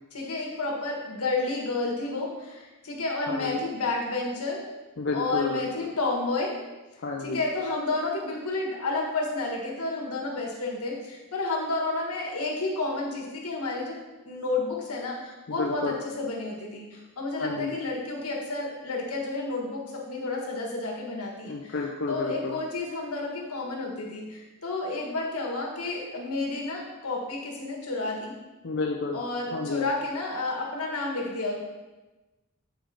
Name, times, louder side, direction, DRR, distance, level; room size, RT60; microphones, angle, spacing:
voice 1, 0.1-4.6 5.1-6.6 7.2-14.0 14.2-21.7 22.1-28.3 29.1-31.6, left 2 dB, 85° left, -2 dB, 1.7 m, -31 dB
voice 2, 3.3-3.6 5.0-5.9 7.0-7.4 15.5-16.0 17.4-17.7 21.4-22.6 28.6-29.2 29.5-29.9, left 4 dB, 55° left, 1 dB, 0.5 m, -31 dB
7.9 x 5.0 x 3.9 m, 1.1 s
head